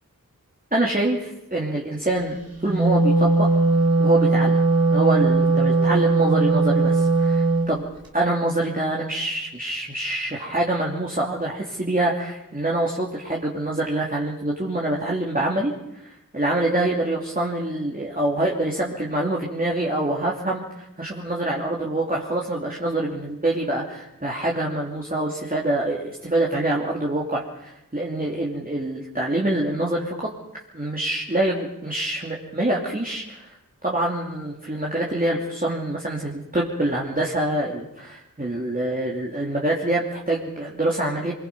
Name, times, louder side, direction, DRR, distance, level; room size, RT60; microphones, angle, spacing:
voice 1, 0.7-3.5 4.0-4.6 4.9-7.9 8.1-30.3 30.7-33.6 33.8-41.3, right 1 dB, 25° right, -3 dB, 2.9 m, -25 dB
Wind instrument woodwind instrument, 2.6-7.7, right 3 dB, 85° right, 3.3 m, -19 dB
24.5 x 22.0 x 5.5 m, 0.86 s
wide cardioid pair, 50°, 35 cm